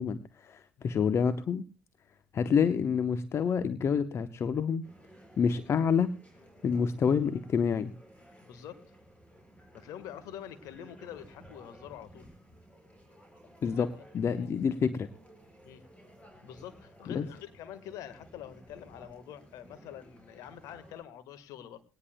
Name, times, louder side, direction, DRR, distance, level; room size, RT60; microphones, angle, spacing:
voice 1, 0.0-1.6 2.3-4.8 5.4-6.2 6.6-7.9 13.6-15.1 17.1-17.2, left 6 dB, 45° left, 12 dB, 0.8 m, -28 dB
sound 1, 4.8-21.0, equal, 20° left, 6.4 m, -56 dB
voice 2, 8.4-8.8 9.7-12.3 13.8-14.5 15.6-15.9 16.4-21.8, left 10 dB, 65° left, 12 dB, 1.5 m, -46 dB
21.0 x 18.5 x 2.2 m, 0.33 s
figure-of-eight pair, 50°, 6 cm